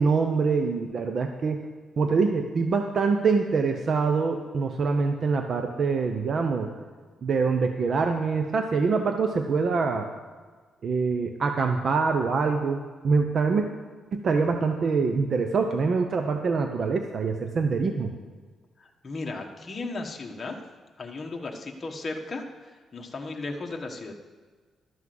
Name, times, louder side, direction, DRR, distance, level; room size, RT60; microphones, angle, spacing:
voice 1, 0.0-1.6 2.0-6.7 7.2-10.1 10.8-13.7 14.1-18.1, right 4 dB, 45° right, 5 dB, 0.7 m, -25 dB
voice 2, 18.8-20.6 21.0-24.1, left 3 dB, 30° left, 1 dB, 1.3 m, -36 dB
12.5 x 6.0 x 7.7 m, 1.5 s
cardioid pair, 135°, 0 cm